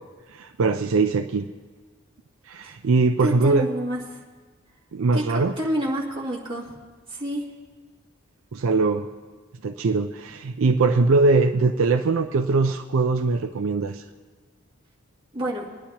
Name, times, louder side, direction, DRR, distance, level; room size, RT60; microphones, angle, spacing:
voice 1, 0.3-1.5 2.5-3.7 4.9-5.5 8.5-9.1 9.6-14.0, right 3 dB, 70° right, 6 dB, 0.4 m, -21 dB
voice 2, 3.2-4.0 5.1-6.7 7.1-7.5 15.3-15.7, right 1 dB, 25° right, -5 dB, 2.2 m, -28 dB
22.5 x 10.5 x 2.9 m, 1.4 s
head